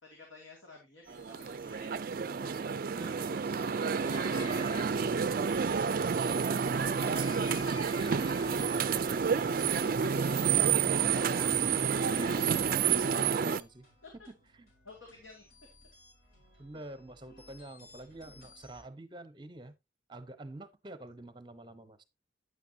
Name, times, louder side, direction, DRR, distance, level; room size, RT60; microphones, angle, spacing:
voice 1, 0.0-4.3 14.0-14.3 14.8-15.4 16.7-16.8 17.3-17.5 18.3-18.4, left 2 dB, 85° left, 2.4 m, -53 dB
sound 1, 1.0-18.8, left 2 dB, 50° left, 4.7 m, -62 dB
sound 2, 1.1-13.6, right 6 dB, 45° right, 0.4 m, -29 dB
voice 2, 2.9-3.3 6.8-11.6 11.9-13.9 14.6-14.7 16.6-19.7 20.1-22.0, right 1 dB, 25° right, 0.8 m, -48 dB
sound 3, 4.0-13.1, left 3 dB, 25° left, 0.6 m, -48 dB
9.5 x 9.0 x 2.7 m
head